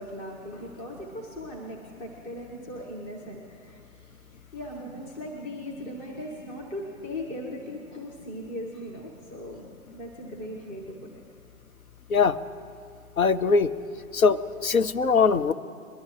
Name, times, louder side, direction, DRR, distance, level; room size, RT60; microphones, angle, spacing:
voice 1, 0.0-4.1 4.5-11.2, left 1 dB, 20° left, -1 dB, 1.4 m, -39 dB
voice 2, 13.2-13.7 14.1-15.5, left 5 dB, 80° left, 10 dB, 0.7 m, -21 dB
22.5 x 12.0 x 3.3 m, 2.3 s
figure-of-eight pair, 120°, 41 cm